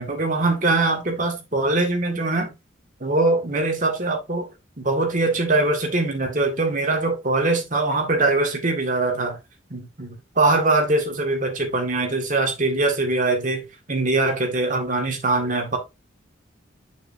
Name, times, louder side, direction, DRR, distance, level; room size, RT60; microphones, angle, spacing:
voice 1, 0.0-2.5 3.0-4.5 4.8-9.4 9.7-15.8, right 2 dB, 40° right, 1.8 m, -22 dB
6.8 x 6.4 x 2.6 m
head